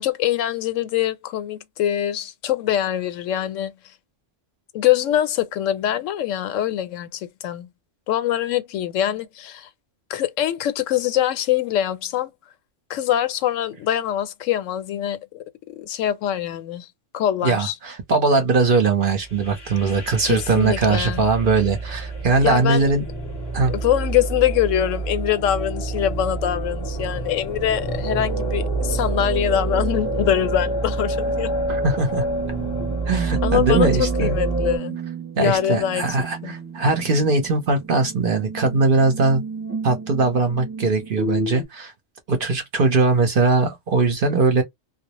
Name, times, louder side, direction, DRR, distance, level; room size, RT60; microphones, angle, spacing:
voice 1, 0.0-3.7 4.7-7.7 8.1-9.7 10.1-12.3 12.9-15.4 15.8-16.9 17.1-17.7 20.2-21.3 22.4-22.9 23.7-31.5 32.8-33.0 33.4-35.0 35.4-36.2 36.4-36.6, left 11 dB, 80° left, 0.9 m, -23 dB
voice 2, 17.4-23.0 23.5-23.7 31.7-32.2 33.1-34.4 35.4-39.4 39.8-41.9 42.3-44.6, right 3 dB, 50° right, 0.8 m, -20 dB
sound 1, 19.2-34.8, right 2 dB, 25° left, 0.6 m, -27 dB
sound 2, 29.9-41.6, right 5 dB, 15° right, 0.3 m, -33 dB
2.1 x 2.0 x 2.9 m
omnidirectional pair, 1.3 m